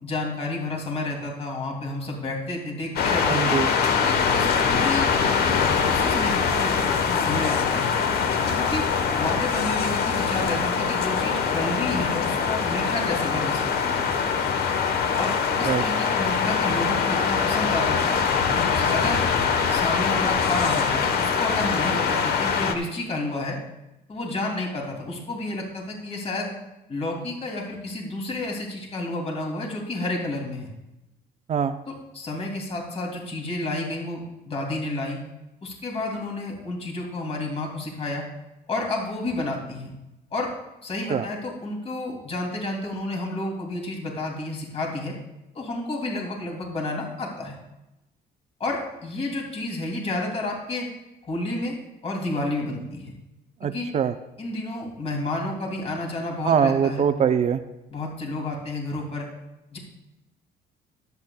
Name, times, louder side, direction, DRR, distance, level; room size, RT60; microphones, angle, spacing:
voice 1, 0.0-3.6 4.0-5.1 5.4-5.5 5.8-8.0 8.6-8.8 9.1-14.0 15.2-18.2 18.6-19.2 19.7-23.6 24.1-26.5 26.9-30.7 32.1-35.2 35.6-38.2 38.7-39.9 40.3-40.5 40.8-45.1 45.5-47.5 48.6-50.9 51.2-51.8 52.0-53.1 53.7-53.9 54.4-57.0 57.9-59.3 59.7-59.8, left 2 dB, 35° left, 0 dB, 2.7 m, -30 dB
sound 1, 3.0-22.7, left 6 dB, 70° left, 1.1 m, -23 dB
voice 2, 3.3-3.7 15.6-15.8 31.5-31.8 41.1-41.3 53.6-54.1 56.4-57.6, right 7 dB, 40° right, 9 dB, 0.6 m, -22 dB
23.5 x 8.3 x 2.3 m, 0.96 s
cardioid pair, 110°, 17 cm